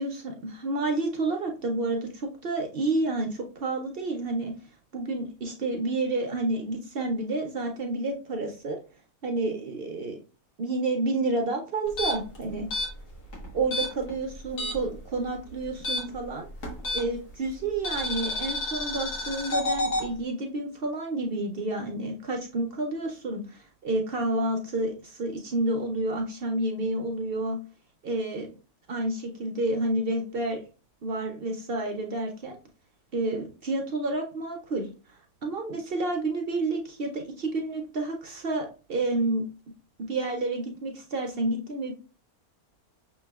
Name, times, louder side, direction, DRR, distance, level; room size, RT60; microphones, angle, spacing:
voice 1, 0.0-4.5 4.9-8.8 9.2-10.2 10.6-12.7 13.5-16.5 16.9-27.6 28.0-28.5 28.9-30.6 31.0-32.6 33.1-34.9 35.4-39.4 40.1-41.9, right 2 dB, 60° right, 3 dB, 0.6 m, -29 dB
sound 1, 11.9-15.0 15.2-17.3 17.8-20.1, left 1 dB, 90° left, 1.8 m, -30 dB
6.0 x 3.1 x 2.3 m, 0.34 s
omnidirectional pair, 1.6 m